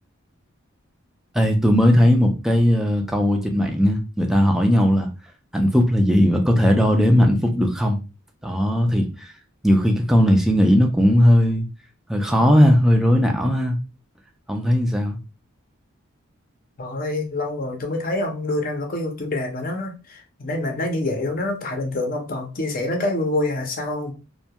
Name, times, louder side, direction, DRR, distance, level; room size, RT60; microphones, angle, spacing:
voice 1, 1.3-5.1 5.5-8.0 8.4-9.3 9.6-11.7 12.1-13.8 14.5-15.2, equal, ahead, 0.4 m, -18 dB
voice 2, 16.8-24.1, left 2 dB, 45° left, 0.6 m, -26 dB
2.3 x 2.1 x 2.7 m
head